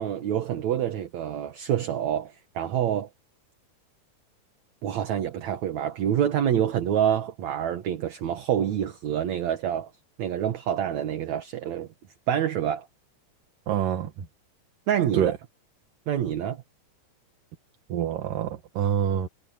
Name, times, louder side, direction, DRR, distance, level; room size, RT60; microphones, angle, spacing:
voice 1, 0.0-3.1 4.8-9.9 10.2-11.9 12.3-12.9 14.9-15.3 16.1-16.6, right 10 dB, 60° right, 2.6 m, -27 dB
voice 2, 13.7-14.3 15.1-15.4 17.9-19.3, right 9 dB, 85° right, 3.3 m, -26 dB
omnidirectional pair, 3.8 m